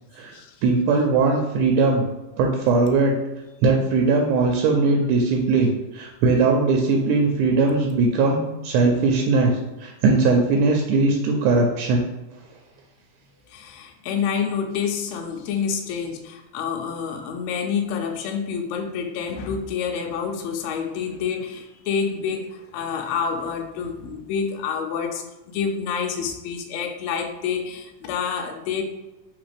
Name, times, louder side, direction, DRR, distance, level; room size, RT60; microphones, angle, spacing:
voice 1, 0.6-2.1 2.4-3.2 3.6-12.0, right 3 dB, 85° right, 1 dB, 2.1 m, -20 dB
voice 2, 13.5-28.8, left 6 dB, 80° left, 3 dB, 1.6 m, -28 dB
3.9 x 3.9 x 3.3 m, 1.0 s
omnidirectional pair, 3.6 m